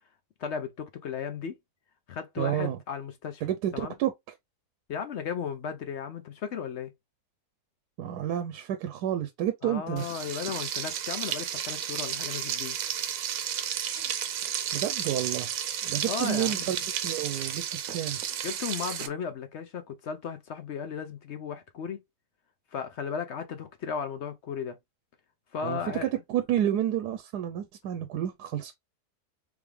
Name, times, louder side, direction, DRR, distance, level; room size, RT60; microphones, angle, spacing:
voice 1, 0.4-1.6 2.1-3.4 3.7-3.9 4.9-6.9 9.6-12.8 16.0-16.7 18.4-22.0 22.7-24.8 25.5-26.1, left 7 dB, 60° left, 0.8 m, -35 dB
voice 2, 2.4-2.8 3.4-4.1 8.0-10.1 14.7-15.5 15.8-16.8 17.0-17.6 17.9-18.2 25.6-28.7, right 11 dB, 85° right, 1.2 m, -30 dB
Frying (food), 10.0-19.1, right 9 dB, 70° right, 1.0 m, -32 dB
3.6 x 3.5 x 3.2 m
omnidirectional pair, 1.7 m